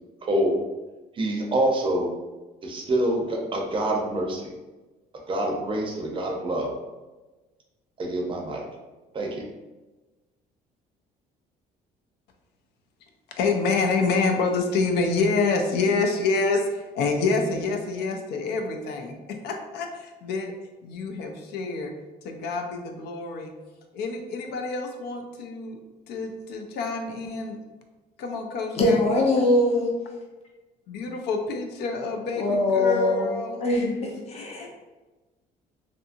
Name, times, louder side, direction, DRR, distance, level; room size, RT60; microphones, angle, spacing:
voice 1, 0.3-0.6 1.2-2.1 2.6-4.5 5.3-6.7 8.0-8.6 9.1-9.5, right 1 dB, 30° right, 0 dB, 0.6 m, -26 dB
voice 2, 13.4-20.5 20.8-21.9 22.2-23.5 23.9-25.8 26.1-27.6 28.2-29.0 30.9-32.4 32.7-33.6 34.6-34.7, left 4 dB, 80° left, 4 dB, 0.5 m, -27 dB
voice 3, 28.8-30.0 32.4-33.3 33.6-34.7, left 2 dB, 40° left, -2 dB, 0.7 m, -22 dB
2.7 x 2.5 x 2.5 m, 1.2 s
cardioid pair, 110°, 17 cm